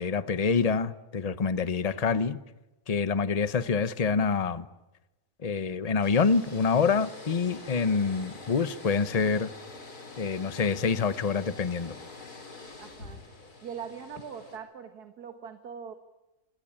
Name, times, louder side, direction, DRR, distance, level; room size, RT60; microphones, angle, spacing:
voice 1, 0.0-2.4 2.9-4.7 5.4-9.5 10.2-11.9, left 5 dB, 30° left, 13 dB, 0.9 m, -26 dB
voice 2, 3.4-3.8 12.8-13.2 13.6-15.9, right 7 dB, 85° right, 7 dB, 2.1 m, -42 dB
sound 1, 6.0-14.6, left 3 dB, 80° left, 4.3 m, -46 dB
27.5 x 23.0 x 8.8 m, 1.0 s
omnidirectional pair, 1.6 m